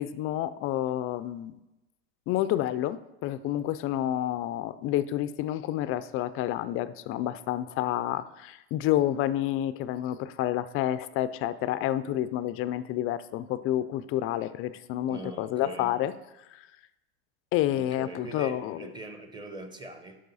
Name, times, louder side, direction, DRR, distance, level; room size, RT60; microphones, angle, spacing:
voice 1, 0.0-1.6 2.3-16.1 16.5-16.6 17.5-18.9, left 13 dB, 40° left, 14 dB, 0.4 m, -29 dB
voice 2, 15.1-15.9 17.7-20.2, right 2 dB, 10° right, 6 dB, 0.9 m, -42 dB
11.5 x 6.1 x 4.1 m, 0.99 s
supercardioid pair, 130°, 35 cm